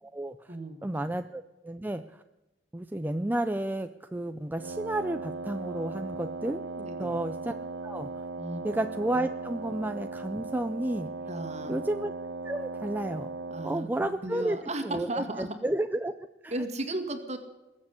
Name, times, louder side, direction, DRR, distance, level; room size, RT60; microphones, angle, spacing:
voice 1, 0.0-0.6 0.8-2.2 2.7-6.6 7.0-7.5 7.8-8.2 8.6-11.1 11.7-12.1 12.4-13.3 13.6-16.1 16.4-16.6, right 1 dB, 10° right, 8 dB, 0.4 m, -32 dB
Wind instrument woodwind instrument, 4.6-13.9, right 3 dB, 90° right, 1.0 m, -38 dB
voice 2, 6.8-7.2 8.4-8.7 11.3-11.8 13.5-15.5 16.5-17.4, right 2 dB, 40° right, 6 dB, 2.0 m, -35 dB
20.5 x 7.5 x 8.4 m, 1.1 s
head